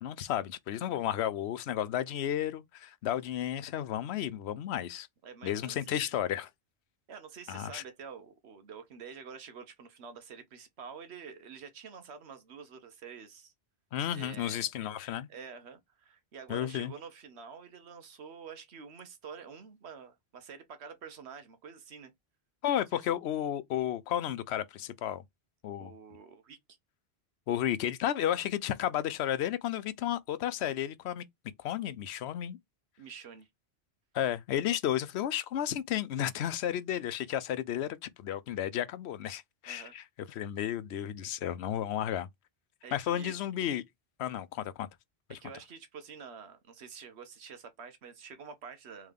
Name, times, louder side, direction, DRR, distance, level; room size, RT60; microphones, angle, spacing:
voice 1, 0.0-5.1 5.4-6.5 7.5-7.8 13.9-15.3 16.5-16.9 22.6-25.2 25.6-25.9 27.5-31.2 31.6-32.6 34.1-42.3 42.9-43.8 44.2-44.9 45.3-45.4, left 11 dB, 85° left, 0.8 m, -33 dB
voice 2, 5.2-6.0 7.1-13.5 14.1-14.7 15.3-22.1 22.9-23.0 25.8-26.6 33.0-33.5 39.7-39.9 42.8-43.4 45.4-49.1, right 6 dB, 85° right, 1.1 m, -48 dB
3.6 x 3.2 x 3.4 m
omnidirectional pair, 1.1 m